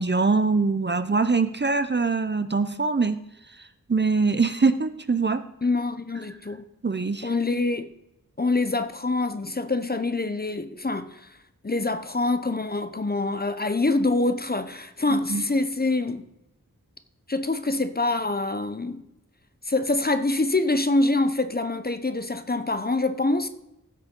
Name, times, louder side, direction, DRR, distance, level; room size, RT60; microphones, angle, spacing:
voice 1, 0.0-3.2 3.9-5.4 6.8-7.3 15.1-15.4, right 4 dB, 30° right, 0.6 m, -23 dB
voice 2, 5.6-6.6 7.2-7.9 8.4-11.3 11.6-16.3 17.3-19.0 19.7-23.5, left 2 dB, 30° left, 0.6 m, -25 dB
15.5 x 6.4 x 3.7 m
wide cardioid pair, 60°, 34 cm